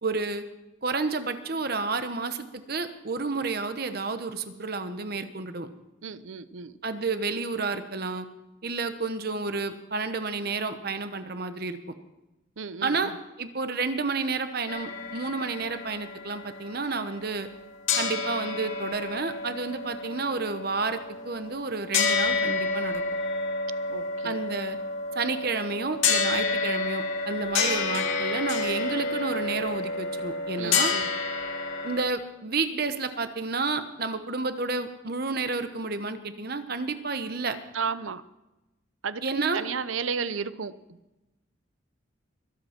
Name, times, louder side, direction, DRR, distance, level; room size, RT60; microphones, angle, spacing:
voice 1, 0.0-0.4 0.8-5.7 6.8-8.3 8.6-11.8 12.8-13.1 13.4-17.5 18.0-23.0 24.2-24.8 25.1-30.9 31.8-37.6 39.2-39.6, right 4 dB, 50° right, 9 dB, 1.0 m, -30 dB
voice 2, 6.0-6.7 12.6-13.1 23.9-24.4 30.6-31.1 37.7-38.2 39.0-40.7, right 5 dB, 80° right, 15 dB, 0.7 m, -33 dB
sound 1, 14.7-17.6 17.9-32.0, left 4 dB, 75° left, 2.1 m, -29 dB
22.5 x 8.1 x 5.9 m, 1.0 s
head